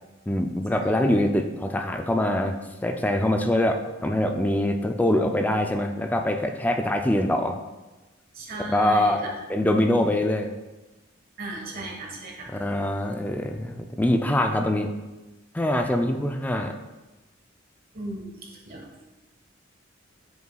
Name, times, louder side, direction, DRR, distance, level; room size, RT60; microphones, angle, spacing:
voice 1, 0.3-7.6 8.6-9.2 9.5-10.5 12.5-14.9 15.5-16.7, left 1 dB, 10° left, 5 dB, 0.3 m, -24 dB
voice 2, 8.3-9.3 11.4-12.5 17.9-19.1, right 2 dB, 45° right, 0 dB, 1.3 m, -36 dB
7.8 x 5.3 x 2.3 m, 1.1 s
head